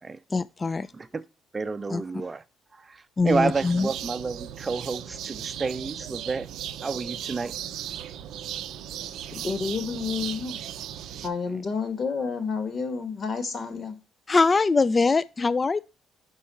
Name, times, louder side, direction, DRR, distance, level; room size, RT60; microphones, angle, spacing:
voice 1, 0.3-0.9 1.9-2.0 3.2-3.9 14.3-15.8, left 4 dB, 30° left, 0.3 m, -22 dB
voice 2, 1.5-2.4 2.7-6.5 6.8-7.5, right 4 dB, 25° right, 0.6 m, -30 dB
sound 1, 3.3-11.3, right 10 dB, 75° right, 0.4 m, -37 dB
voice 3, 9.3-10.6 11.2-14.0, left 5 dB, 45° left, 1.6 m, -30 dB
4.8 x 4.3 x 5.5 m
cardioid pair, 80°, 0 cm